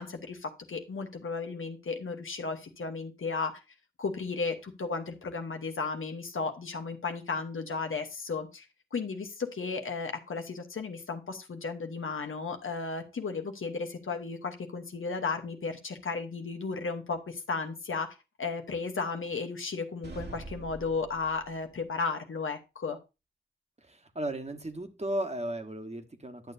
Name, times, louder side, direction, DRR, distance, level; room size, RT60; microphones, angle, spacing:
voice 1, 0.0-3.6 4.0-8.6 8.9-23.0, left 4 dB, 90° left, 5 dB, 1.0 m, -34 dB
sound 1, 20.0-21.7, right 2 dB, 55° right, 1.5 m, -44 dB
voice 2, 23.8-26.5, right 1 dB, 35° right, 6 dB, 1.3 m, -35 dB
10.5 x 6.8 x 2.7 m, 0.27 s
cardioid pair, 45°, 20 cm